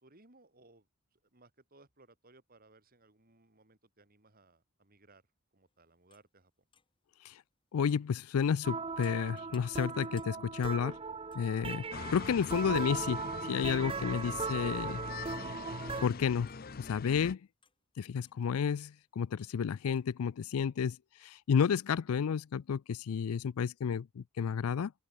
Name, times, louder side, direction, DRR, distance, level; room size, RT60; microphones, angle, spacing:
voice 1, 0.0-5.2 5.5-6.5, right 2 dB, 45° right, 3.0 m, -63 dB
sound 1, 5.7-5.8 6.1-6.2 6.7-7.5 7.9-12.7 13.0-13.2 13.5-14.3 14.6-15.6 15.8-17.8 18.2-18.5 18.8-18.9 19.4-19.6 19.9-20.1, left 6 dB, 25° left, 2.5 m, -66 dB
voice 2, 7.7-11.0 11.3-11.8 12.1-15.0 16.0-16.5 16.8-17.4 18.0-21.0 21.2-24.9, left 7 dB, 85° left, 0.4 m, -31 dB
sound 2, 8.6-16.1, right 4 dB, 25° right, 0.7 m, -38 dB
sound 3, 11.9-17.3, left 4 dB, 45° left, 0.7 m, -43 dB
open air
head